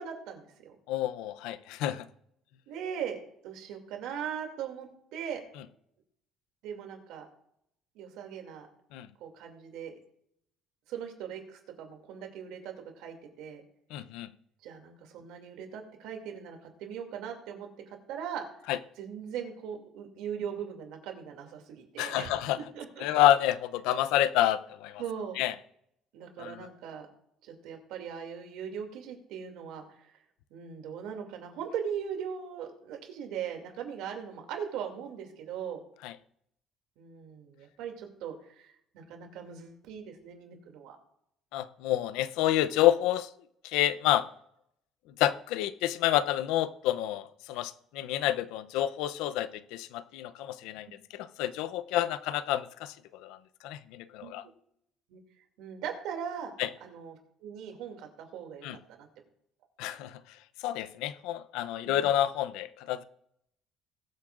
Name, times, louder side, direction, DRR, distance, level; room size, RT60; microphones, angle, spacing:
voice 1, 0.0-0.7 2.7-3.2 3.4-5.4 6.6-7.3 7.9-8.7 9.2-9.9 10.9-13.6 14.6-18.4 19.0-23.1 25.0-25.4 26.1-27.1 27.4-30.1 30.5-35.8 37.0-41.0 54.2-54.3 55.1-55.2 55.6-56.5 56.8-57.2 57.4-58.7 59.0-59.1 61.8-62.1, right 8 dB, 80° right, 2.5 m, -39 dB
voice 2, 0.9-2.1 8.9-9.1 13.9-14.3 18.7-18.8 22.0-22.6 23.0-25.0 25.4-25.5 26.4-26.7 36.0-36.1 41.5-43.3 43.6-44.2 45.2-50.9 51.1-53.4 53.6-54.4 56.6-56.7 58.6-58.8 59.8-60.2 60.6-63.0, left 13 dB, 90° left, 0.6 m, -28 dB
21.0 x 8.4 x 2.5 m
cardioid pair, 135°, 0 cm